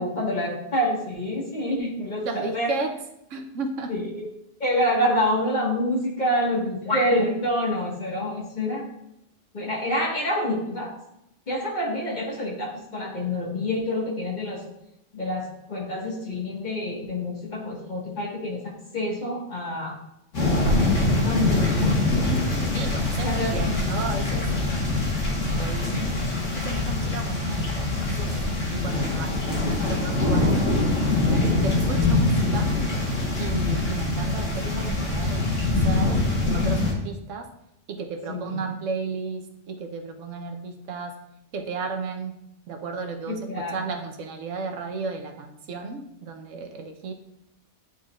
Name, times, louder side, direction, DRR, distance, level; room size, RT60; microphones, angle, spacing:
voice 1, 0.0-2.7 3.9-4.3 4.6-8.8 9.5-10.9 11.5-14.6 15.1-20.0 20.7-22.0 23.2-23.5 31.1-31.5 38.3-38.5 43.3-43.8, left 1 dB, 35° left, -3 dB, 1.7 m, -27 dB
voice 2, 2.2-3.0 3.3-3.9 22.7-33.0 33.4-36.3 36.5-37.5 37.9-41.2 41.5-42.4 42.7-47.1, right 4 dB, 85° right, 5 dB, 1.1 m, -34 dB
sound 1, 20.3-36.9, left 2 dB, 75° left, 1.8 m, -24 dB
9.6 x 4.2 x 2.4 m, 0.82 s
omnidirectional pair, 1.3 m